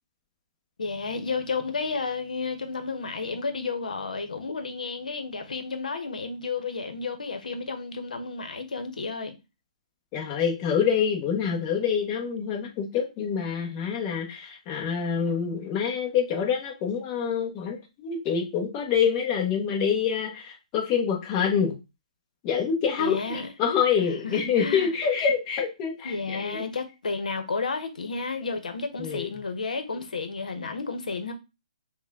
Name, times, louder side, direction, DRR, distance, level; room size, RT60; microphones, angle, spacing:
voice 1, 0.8-9.3 23.0-23.5 24.0-24.9 26.0-31.3, left 4 dB, 85° left, 0.8 m, -32 dB
voice 2, 10.1-21.7 22.4-26.6 29.0-29.3, left 7 dB, 20° left, 0.8 m, -26 dB
4.4 x 2.1 x 3.5 m
hypercardioid pair, 165°, 4 cm